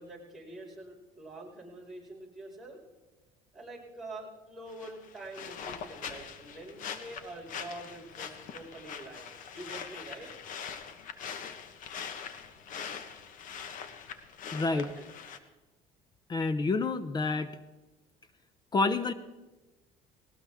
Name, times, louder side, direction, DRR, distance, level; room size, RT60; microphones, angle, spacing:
voice 1, 0.0-2.8 3.5-10.3 14.7-15.1, right 2 dB, ahead, -6 dB, 5.4 m, -46 dB
sound 1, 4.7-15.4, left 7 dB, 60° left, 1.2 m, -43 dB
voice 2, 14.5-14.9 16.3-17.6 18.7-19.1, left 3 dB, 25° left, 12 dB, 0.7 m, -28 dB
19.0 x 18.5 x 3.6 m, 1.1 s
cardioid pair, 120°, 16 cm